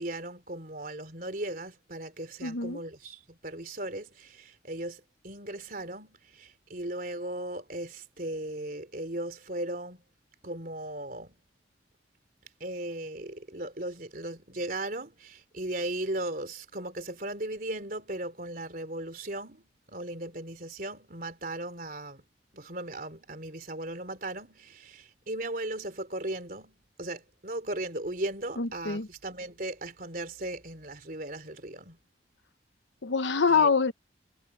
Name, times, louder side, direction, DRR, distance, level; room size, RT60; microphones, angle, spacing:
voice 1, 0.0-10.0 10.4-11.4 12.6-22.2 22.5-32.0 33.5-33.7, right 1 dB, 50° right, 3.7 m, -37 dB
voice 2, 2.4-2.8 28.6-29.1 33.0-33.9, left 5 dB, 75° left, 0.9 m, -25 dB
head